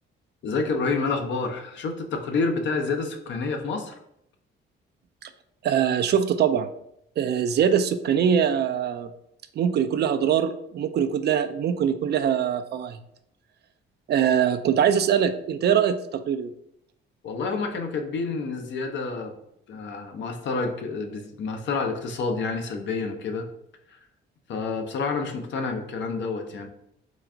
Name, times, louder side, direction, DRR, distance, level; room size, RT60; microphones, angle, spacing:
voice 1, 0.4-4.0 17.2-19.3 19.7-23.5 23.9-24.0 24.5-26.7, left 4 dB, 65° left, 5 dB, 0.7 m, -28 dB
voice 2, 5.6-6.7 7.2-9.1 9.6-13.0 14.1-16.5, right 8 dB, 55° right, 10 dB, 0.4 m, -23 dB
3.9 x 2.4 x 4.6 m, 0.76 s
cardioid pair, 90°, 20 cm